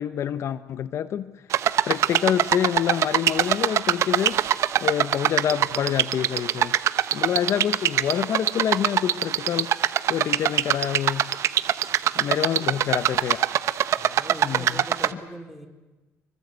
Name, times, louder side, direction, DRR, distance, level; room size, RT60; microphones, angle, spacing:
voice 1, 0.0-1.3 1.9-4.4 4.8-6.8 7.1-9.8 10.1-11.3 12.2-13.5 14.4-14.8, left 9 dB, 55° left, 14 dB, 0.8 m, -27 dB
sound 1, 1.5-15.1, right 10 dB, 60° right, 1.1 m, -23 dB
voice 2, 12.2-12.9 14.0-15.7, right 1 dB, ahead, 6 dB, 3.9 m, -42 dB
26.0 x 24.0 x 8.0 m, 1.1 s
cardioid pair, 125°, 6 cm